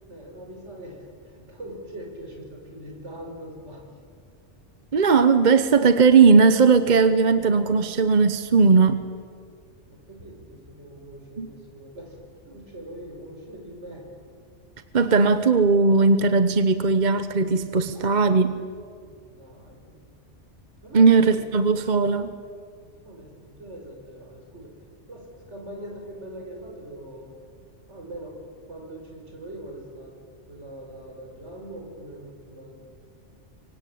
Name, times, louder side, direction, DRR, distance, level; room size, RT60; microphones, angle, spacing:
voice 1, 0.1-3.9 9.9-12.2 12.5-14.1 17.9-18.3 19.0-20.0 20.8-21.5 23.0-24.7 25.1-27.3 27.9-30.2 30.5-32.8, right 1 dB, 75° right, 1 dB, 6.2 m, -42 dB
voice 2, 4.9-9.0 11.4-11.5 14.9-18.5 20.9-22.3, right 4 dB, 40° right, 11 dB, 1.0 m, -18 dB
24.5 x 24.5 x 8.6 m, 2.1 s
omnidirectional pair, 1.2 m